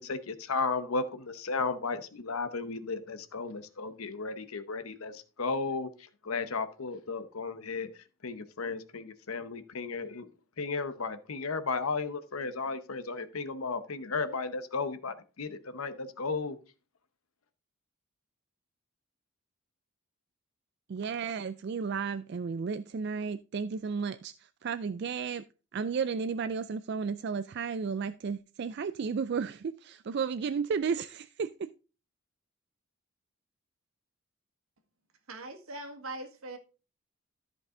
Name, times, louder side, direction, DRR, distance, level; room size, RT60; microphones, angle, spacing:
voice 1, 0.0-7.9 8.2-10.3 10.6-16.6, left 4 dB, 80° left, 0.8 m, -34 dB
voice 2, 20.9-25.4 25.7-31.7, right 5 dB, 50° right, 0.3 m, -33 dB
voice 3, 35.3-36.6, right 2 dB, 80° right, 1.7 m, -41 dB
13.5 x 5.4 x 3.7 m
head